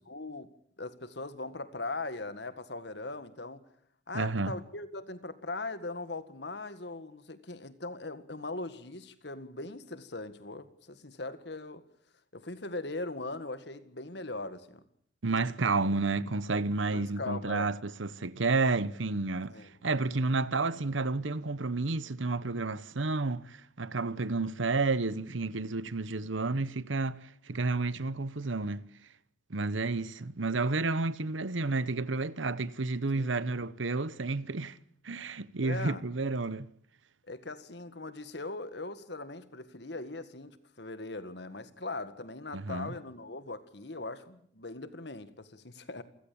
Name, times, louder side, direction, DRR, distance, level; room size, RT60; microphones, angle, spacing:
voice 1, 0.1-0.5 0.8-3.6 4.1-11.8 12.3-14.8 16.9-17.7 19.5-19.7 33.2-33.4 35.6-36.0 37.3-46.0, left 2 dB, 65° left, 1.8 m, -40 dB
voice 2, 4.1-4.5 15.2-28.8 29.5-34.8 35.0-36.7 42.5-42.9, right 3 dB, 90° right, 1.0 m, -31 dB
28.5 x 15.5 x 8.7 m
head